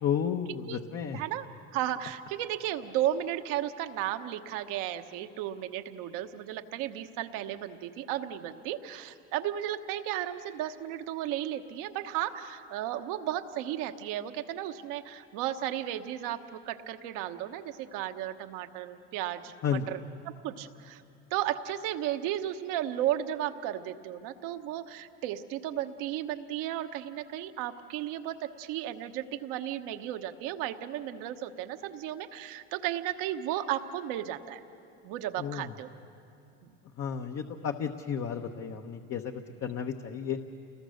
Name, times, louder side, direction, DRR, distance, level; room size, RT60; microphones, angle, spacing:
voice 1, 0.0-1.2 19.6-20.0 35.4-35.7 37.0-40.4, left 7 dB, 45° left, 3 dB, 1.1 m, -32 dB
voice 2, 1.1-20.0 20.3-21.0 21.3-34.6 35.0-35.9 36.6-36.7, right 12 dB, 70° right, 8 dB, 1.2 m, -34 dB
29.0 x 20.0 x 6.5 m, 2.7 s
supercardioid pair, 85°, 34 cm